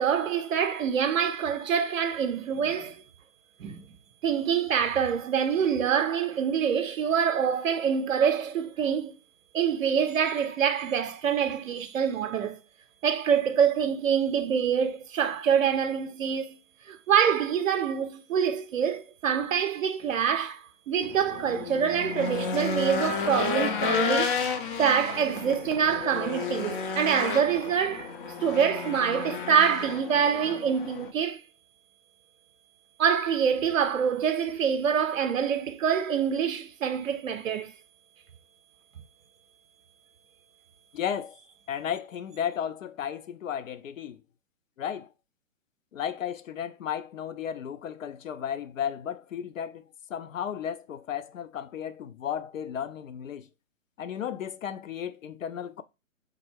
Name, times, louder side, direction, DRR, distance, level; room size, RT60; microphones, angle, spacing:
voice 1, 0.0-3.0 3.6-3.8 4.2-9.1 9.5-12.6 13.0-16.6 16.9-24.3 24.8-31.4 33.0-37.7, right 7 dB, 75° right, 0.6 m, -26 dB
Race car auto racing / Engine, 21.0-31.1, left 5 dB, 40° left, 0.7 m, -32 dB
voice 2, 40.9-41.4 41.7-44.2 44.8-45.1 45.9-53.5 54.0-55.8, left 9 dB, 75° left, 0.5 m, -34 dB
3.7 x 3.4 x 3.2 m
figure-of-eight pair, 130°, 40 cm